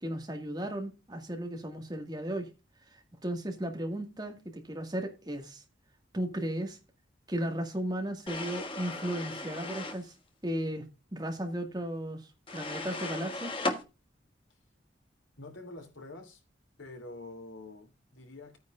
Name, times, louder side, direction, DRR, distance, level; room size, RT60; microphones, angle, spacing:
voice 1, 0.0-2.5 2.9-5.6 6.1-6.8 7.3-10.1 10.4-10.9 11.1-13.5, right 1 dB, 20° right, 2.0 m, -35 dB
sound 1, 8.3-10.0 12.5-13.8, left 2 dB, 25° left, 1.4 m, -36 dB
voice 2, 15.4-16.4 16.8-18.6, left 2 dB, 80° left, 2.9 m, -46 dB
14.0 x 9.4 x 2.5 m
head